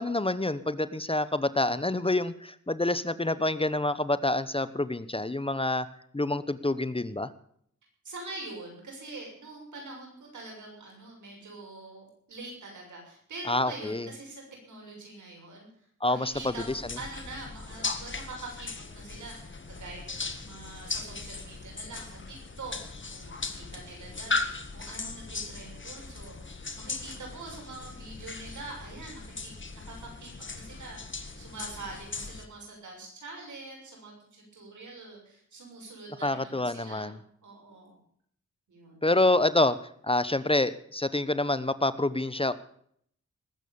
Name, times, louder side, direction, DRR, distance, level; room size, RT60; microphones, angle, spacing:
voice 1, 0.0-5.9 6.1-7.3 13.5-14.1 16.0-16.8 36.2-37.2 39.0-39.8 40.0-42.5, left 2 dB, 20° left, 14 dB, 0.9 m, -27 dB
voice 2, 8.0-15.7 16.1-22.8 23.1-37.2 37.4-38.0 38.7-39.0, right 2 dB, 90° right, 0 dB, 6.8 m, -44 dB
sound 1, 16.3-32.4, left 3 dB, 40° left, 1.8 m, -38 dB
19.5 x 8.4 x 7.0 m, 0.65 s
cardioid pair, 60°, 29 cm